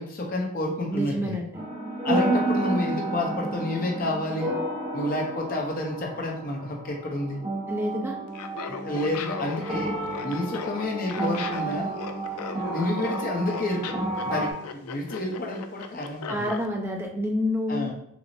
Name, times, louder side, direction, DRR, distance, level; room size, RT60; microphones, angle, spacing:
voice 1, 0.0-1.4 2.0-4.5 4.9-7.4 8.5-10.0 10.2-11.9 12.7-16.5 17.7-17.9, left 1 dB, 40° left, 0 dB, 0.7 m, -29 dB
voice 2, 0.9-1.7 7.7-8.1 16.3-17.9, left 1 dB, 10° right, 0 dB, 0.5 m, -28 dB
sound 1, 1.5-14.5, right 2 dB, 25° right, 0.8 m, -31 dB
Laughter, 8.3-16.7, left 6 dB, 85° left, 0.4 m, -37 dB
5.9 x 2.0 x 2.6 m, 0.73 s
head